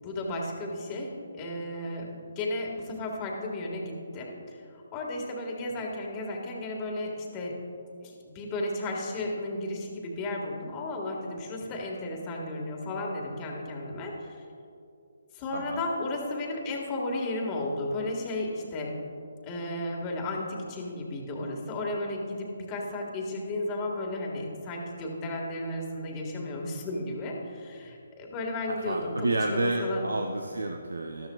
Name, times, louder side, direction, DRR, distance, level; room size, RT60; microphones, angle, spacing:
voice 1, 0.0-7.6 8.0-14.4 15.3-18.9 19.4-30.1, left 2 dB, 25° left, -1 dB, 1.7 m, -34 dB
voice 2, 28.7-31.3, right 2 dB, 85° right, 4 dB, 0.7 m, -30 dB
13.5 x 12.5 x 2.4 m, 2.5 s
figure-of-eight pair, 150°, 0 cm